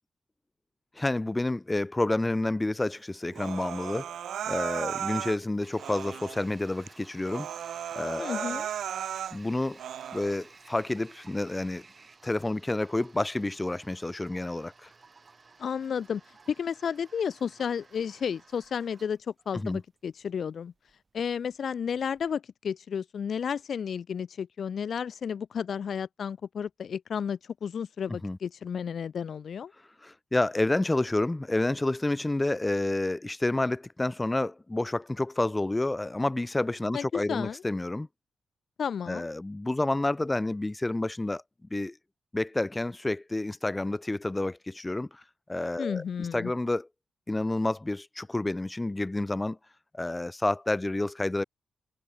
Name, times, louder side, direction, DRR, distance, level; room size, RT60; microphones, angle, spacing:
voice 1, 1.0-4.1 4.5-7.5 7.9-8.6 9.3-9.8 10.1-11.8 12.2-14.9 19.5-19.8 28.2-28.4 30.0-38.1 39.1-41.4 41.7-42.0 42.3-45.2 45.5-46.9 47.3-49.6 49.9-51.4, left 2 dB, 15° left, 0.6 m, -29 dB
Human voice, 3.3-5.4 5.8-6.4 6.9-7.0 7.3-9.4 9.8-10.4, right 10 dB, 85° right, 0.6 m, -35 dB
Toilet flush, 5.6-22.3, right 4 dB, 35° right, 5.4 m, -56 dB
voice 2, 8.2-8.7 15.6-16.2 16.5-20.7 21.1-29.7 36.9-37.6 38.8-39.3 45.8-46.5, left 7 dB, 65° left, 0.8 m, -32 dB
cardioid pair, 90°, 0 cm